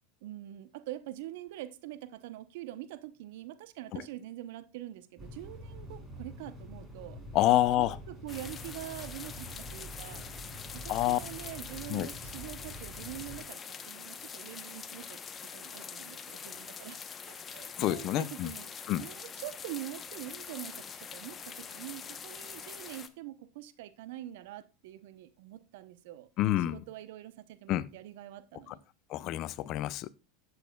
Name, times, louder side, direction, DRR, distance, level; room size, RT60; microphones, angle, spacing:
voice 1, 0.2-7.2 7.8-10.3 10.7-17.0 17.3-18.7 19.0-26.3 26.6-28.8, right 14 dB, 65° right, 0.8 m, -45 dB
sound 1, 5.2-13.4, equal, 15° right, 5.1 m, -46 dB
voice 2, 7.3-8.0 10.9-11.2 11.9-12.1 17.8-18.5 18.9-19.0 26.4-26.8 27.7-27.9 28.7-28.8 29.1-30.1, left 14 dB, 50° left, 0.6 m, -28 dB
sound 2, 8.3-23.1, left 6 dB, 30° left, 0.9 m, -44 dB
12.5 x 8.0 x 2.3 m
hypercardioid pair, 90°, 0 cm